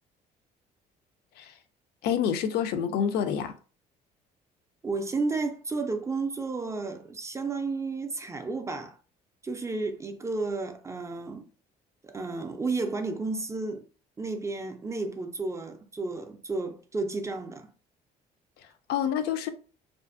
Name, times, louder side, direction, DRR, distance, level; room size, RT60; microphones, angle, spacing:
voice 1, 2.0-3.5 18.9-19.5, left 8 dB, 75° left, 0.4 m, -27 dB
voice 2, 4.8-9.0 9.4-11.5 12.0-13.8 14.2-17.7, right 3 dB, 15° right, 0.3 m, -32 dB
2.5 x 2.4 x 2.4 m
cardioid pair, 110°, 17 cm